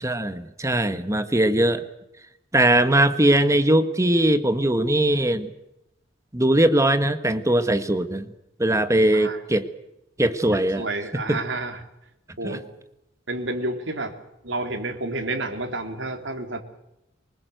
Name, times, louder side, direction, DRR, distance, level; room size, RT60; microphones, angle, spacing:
voice 1, 0.0-1.8 2.5-5.5 6.3-8.3 8.6-9.7 10.2-10.8 11.3-11.4 12.4-12.6, right 1 dB, 15° right, 10 dB, 1.4 m, -20 dB
voice 2, 10.8-11.8 12.4-12.6 13.3-14.2 14.4-16.6, right 2 dB, 70° right, 5 dB, 3.4 m, -30 dB
24.5 x 20.5 x 7.9 m, 0.85 s
head